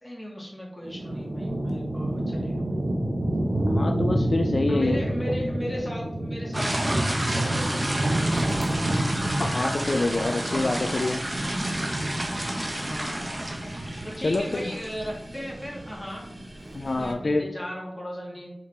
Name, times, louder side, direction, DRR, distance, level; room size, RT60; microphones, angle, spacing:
voice 1, 0.0-2.8 4.7-8.6 12.8-13.3 14.0-16.3 16.8-18.5, equal, 15° left, -3 dB, 2.5 m, -36 dB
sound 1, 0.8-17.4, right 1 dB, 85° right, 1.2 m, -29 dB
voice 2, 3.7-5.0 9.4-11.2 14.2-14.7 16.7-17.5, left 2 dB, 60° left, 5 dB, 0.4 m, -26 dB
sound 2, 6.5-17.1, right 1 dB, 30° right, 1.3 m, -32 dB
4.9 x 4.9 x 4.3 m, 0.83 s
wide cardioid pair, 50°, 0 cm